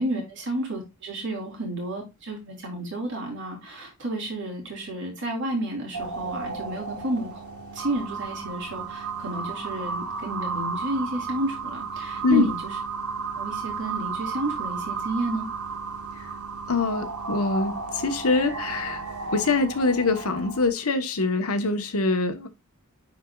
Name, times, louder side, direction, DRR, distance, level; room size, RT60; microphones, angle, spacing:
voice 1, 0.0-7.4 7.7-12.8 13.4-15.5, right 1 dB, 55° right, 4.0 m, -31 dB
sound 1, 5.9-20.7, right 4 dB, 90° right, 2.5 m, -33 dB
voice 2, 16.7-19.0 19.3-22.5, left 3 dB, 80° left, 1.3 m, -24 dB
9.9 x 4.6 x 2.4 m
head